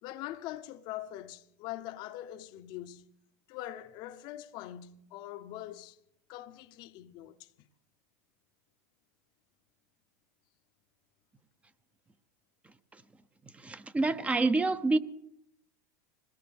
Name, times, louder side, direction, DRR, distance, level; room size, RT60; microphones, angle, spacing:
voice 1, 0.0-3.1 3.5-6.0 6.3-7.7, left 13 dB, 55° left, 0.8 m, -43 dB
voice 2, 13.6-15.0, right 3 dB, 15° right, 0.7 m, -27 dB
21.0 x 18.0 x 3.5 m
supercardioid pair, 110°, 9 cm